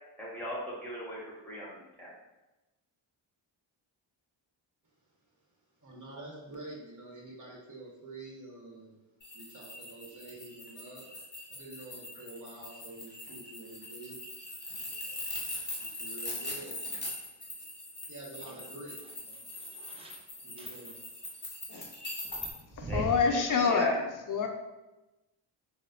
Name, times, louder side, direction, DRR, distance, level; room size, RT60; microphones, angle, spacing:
voice 1, 0.2-1.2 1.4-1.7 2.0-2.1 22.9-23.0 23.3-23.4 23.7-23.9, left 2 dB, 5° left, -6 dB, 1.4 m, -36 dB
voice 2, 5.8-8.9 9.3-11.0 11.5-14.2 15.0-15.5 15.8-16.7 17.3-17.7 18.1-19.4 20.4-21.0, right 2 dB, 35° right, -2 dB, 1.1 m, -47 dB
sound 1, 9.2-22.5, left 2 dB, 20° left, 1.1 m, -41 dB
sound 2, 18.4-20.2 20.6-21.0 22.3-23.7, right 2 dB, 15° right, 0.4 m, -42 dB
voice 3, 22.7-24.5, left 5 dB, 40° left, 4 dB, 0.5 m, -27 dB
3.9 x 2.1 x 2.4 m, 1.0 s
supercardioid pair, 45°, 50 cm